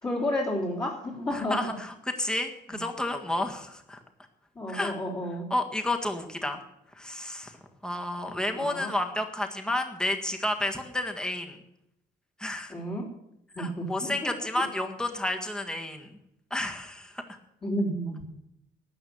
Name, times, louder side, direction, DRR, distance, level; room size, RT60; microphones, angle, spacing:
voice 1, 0.0-1.7 2.7-2.8 4.5-5.5 8.5-8.9 12.7-13.1 13.5-14.3 17.6-18.2, left 1 dB, 25° left, -7 dB, 3.5 m, -31 dB
voice 2, 1.3-4.0 4.7-4.9 5.5-6.6 6.9-7.6 7.8-11.6 12.4-12.7 13.6-16.1 16.5-17.4, left 1 dB, 5° left, 4 dB, 1.6 m, -31 dB
13.0 x 9.5 x 7.0 m, 0.81 s
cardioid pair, 90°, 20 cm